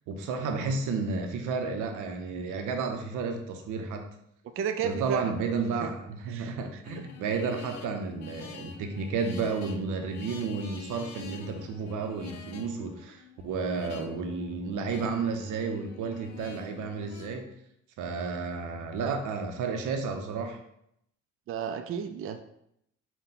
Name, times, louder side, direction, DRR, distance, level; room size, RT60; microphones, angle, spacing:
voice 1, 0.1-4.0 4.8-17.5 18.0-20.6, right 4 dB, 85° right, 5 dB, 0.7 m, -32 dB
voice 2, 4.6-5.3 5.8-5.9 6.3-6.8 21.5-22.4, right 7 dB, 45° right, 8 dB, 0.4 m, -33 dB
sound 1, 6.8-17.4, left 6 dB, 65° left, 0.6 m, -47 dB
5.6 x 2.2 x 3.8 m, 0.76 s
cardioid pair, 90°, 30 cm